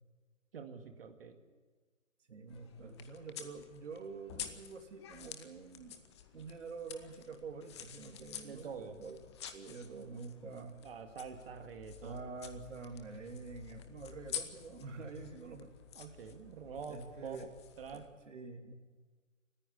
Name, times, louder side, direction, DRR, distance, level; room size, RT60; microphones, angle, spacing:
voice 1, 0.5-1.4 2.8-3.0 8.4-9.0 10.8-12.2 16.0-17.5 17.8-18.0, right 6 dB, 45° right, 6 dB, 2.0 m, -46 dB
voice 2, 2.3-6.0 6.3-9.2 9.5-10.8 12.0-15.7 16.9-17.5 17.9-18.7, right 4 dB, 65° right, 5 dB, 2.9 m, -47 dB
sound 1, 2.5-18.1, left 9 dB, 20° left, 1.0 m, -50 dB
28.5 x 9.9 x 9.6 m, 1.4 s
hypercardioid pair, 155°, 40 cm